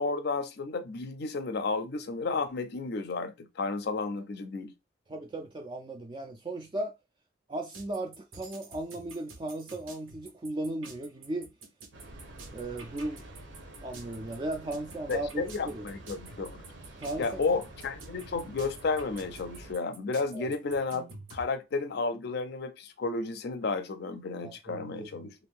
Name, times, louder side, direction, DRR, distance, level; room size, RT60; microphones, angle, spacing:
voice 1, 0.0-4.7 15.1-16.6 17.2-25.3, left 3 dB, 55° left, 0.4 m, -32 dB
voice 2, 5.1-6.9 7.5-11.5 12.5-13.2 13.8-15.9 17.0-17.4 20.3-20.5 24.4-25.3, right 1 dB, 25° right, 0.3 m, -36 dB
sound 1, 7.7-21.4, right 4 dB, 80° right, 0.9 m, -49 dB
Train, 11.9-19.7, right 1 dB, 60° right, 0.8 m, -48 dB
2.5 x 2.5 x 3.4 m
head